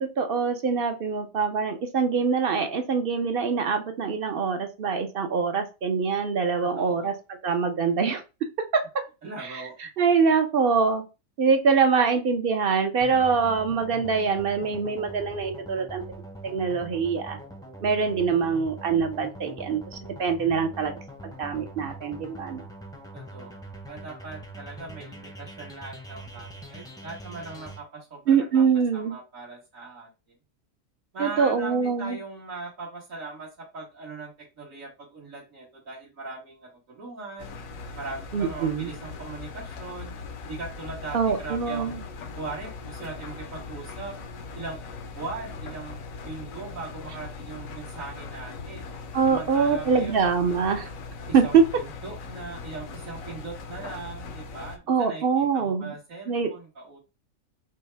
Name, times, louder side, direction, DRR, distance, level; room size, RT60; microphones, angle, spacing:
voice 1, 0.0-7.1 7.4-8.2 9.4-9.6 10.0-11.0 11.4-16.0 16.4-17.4 17.8-20.9 21.4-22.6 28.3-29.2 31.2-32.2 38.3-38.9 41.1-42.0 49.1-50.9 51.3-51.6 54.9-55.9 56.3-56.5, right 5 dB, 50° right, 7 dB, 0.8 m, -24 dB
voice 2, 6.7-7.1 9.2-9.8 23.1-23.6 23.9-28.6 28.9-30.1 31.1-34.3 34.6-37.5 38.0-40.1 40.4-42.0 42.3-44.1 44.6-44.8 45.1-46.0 46.2-48.9 49.3-50.2 51.3-57.0, right 3 dB, 75° right, -4 dB, 2.0 m, -39 dB
sound 1, 13.0-27.8, right 1 dB, 5° left, 0.6 m, -43 dB
Engine, 37.4-54.8, left 4 dB, 80° left, 1.1 m, -40 dB
5.3 x 2.2 x 3.3 m, 0.28 s
omnidirectional pair, 1.4 m